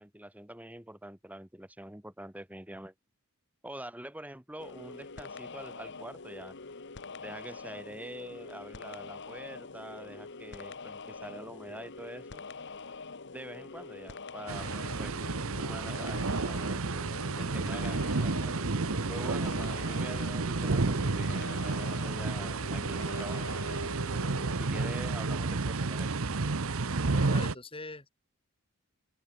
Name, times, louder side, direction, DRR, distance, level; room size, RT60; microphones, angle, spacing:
voice 1, 0.0-2.9 3.6-6.6 7.2-12.4 13.3-14.7 15.0-15.1 15.6-16.8 17.4-18.5 19.1-23.9 24.6-26.2, right 1 dB, 5° right, 2.1 m, -45 dB
sound 1, 4.6-24.6, left 4 dB, 55° left, 1.3 m, -45 dB
sound 2, 14.5-27.5, right 3 dB, 70° right, 1.0 m, -31 dB
voice 2, 27.0-28.1, left 2 dB, 25° left, 6.3 m, -43 dB
head